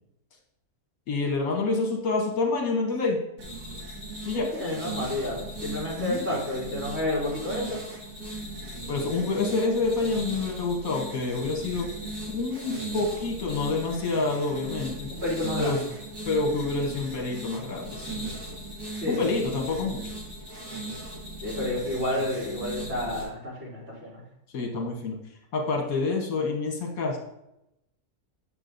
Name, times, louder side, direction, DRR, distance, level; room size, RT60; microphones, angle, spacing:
voice 1, 1.1-3.2 4.2-4.5 6.0-6.2 8.9-11.9 12.3-15.1 15.6-15.8 16.3-18.2 19.1-20.0 24.5-25.2 25.5-27.2, left 3 dB, 65° left, 0 dB, 1.4 m, -27 dB
sound 1, 3.4-23.2, right 1 dB, 85° right, 2.6 m, -38 dB
voice 2, 4.3-7.8 15.1-15.8 19.0-19.3 21.4-24.2, left 1 dB, 40° right, -7 dB, 3.0 m, -30 dB
8.6 x 6.6 x 2.5 m, 0.86 s
omnidirectional pair, 1.6 m